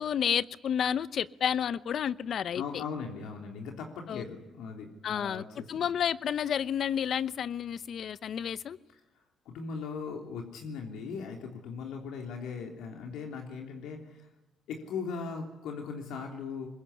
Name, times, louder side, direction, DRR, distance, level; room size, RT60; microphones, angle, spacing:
voice 1, 0.0-2.8 4.1-4.2 5.0-8.8, left 8 dB, 60° left, 16 dB, 0.9 m, -31 dB
voice 2, 2.5-5.9 9.4-14.3 14.7-16.7, left 5 dB, 90° left, 2 dB, 3.3 m, -39 dB
23.0 x 21.5 x 10.0 m, 0.93 s
cardioid pair, 90°, 0 cm